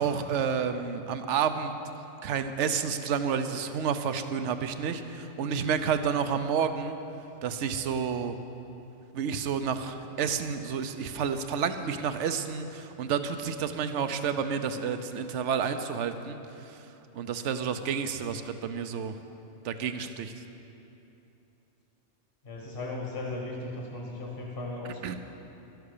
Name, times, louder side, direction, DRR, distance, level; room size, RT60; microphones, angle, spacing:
voice 1, 0.0-1.7 2.2-7.0 7.4-8.4 9.1-16.8 17.1-19.1 19.6-20.3 24.8-25.2, right 7 dB, 80° right, 9 dB, 1.0 m, -30 dB
voice 2, 22.4-25.2, left 2 dB, 50° left, -2 dB, 1.7 m, -37 dB
12.5 x 11.0 x 6.7 m, 2.9 s
omnidirectional pair, 1.2 m